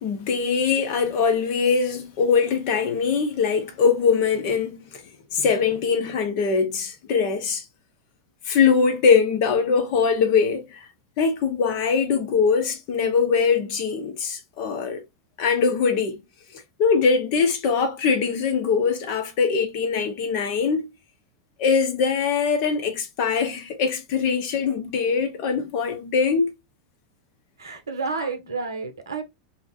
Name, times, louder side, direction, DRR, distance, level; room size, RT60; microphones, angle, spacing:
voice 1, 0.0-4.8 5.3-7.6 8.4-10.8 11.2-15.0 15.4-16.2 16.5-20.9 21.6-26.5, left 5 dB, 50° left, 0.7 m, -22 dB
voice 2, 27.6-29.2, right 4 dB, 80° right, 0.6 m, -30 dB
2.8 x 2.0 x 2.7 m
figure-of-eight pair, 90°, 2 cm